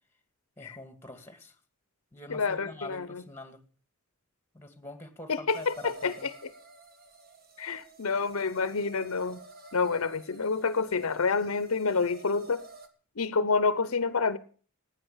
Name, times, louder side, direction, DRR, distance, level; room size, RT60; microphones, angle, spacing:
voice 1, 0.6-1.6 2.1-3.6 4.5-6.3, left 2 dB, 10° left, 2.3 m, -44 dB
voice 2, 2.3-3.2 5.3-6.5 7.6-9.4 9.7-12.6 13.2-14.4, left 4 dB, 75° left, 0.8 m, -28 dB
sound 1, 5.5-12.9, right 3 dB, 45° right, 1.9 m, -50 dB
16.0 x 9.6 x 7.3 m
head